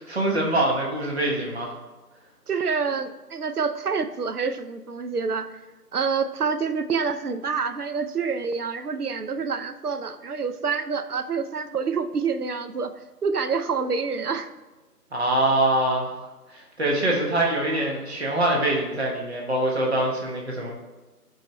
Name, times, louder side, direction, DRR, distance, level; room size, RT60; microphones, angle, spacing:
voice 1, 0.0-1.7 15.1-16.1 16.5-20.7, right 1 dB, 40° right, -2 dB, 1.3 m, -24 dB
voice 2, 2.5-5.5 5.9-12.9 13.2-14.5, right 5 dB, 70° right, 10 dB, 0.6 m, -27 dB
8.3 x 4.7 x 3.2 m, 1.2 s
figure-of-eight pair, 170°, 48 cm